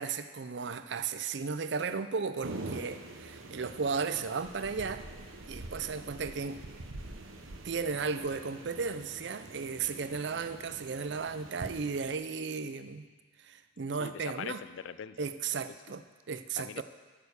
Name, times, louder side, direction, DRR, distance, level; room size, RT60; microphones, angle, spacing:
voice 1, 0.0-5.0 5.5-6.6 7.6-13.1 13.4-14.6 15.2-16.8, right 5 dB, 55° right, 10 dB, 0.5 m, -35 dB
sound 1, 2.4-12.2, right 2 dB, 80° right, 0.9 m, -45 dB
voice 2, 14.0-15.3 16.6-16.8, left 8 dB, 65° left, 16 dB, 0.3 m, -42 dB
8.8 x 6.8 x 6.8 m, 1.4 s
head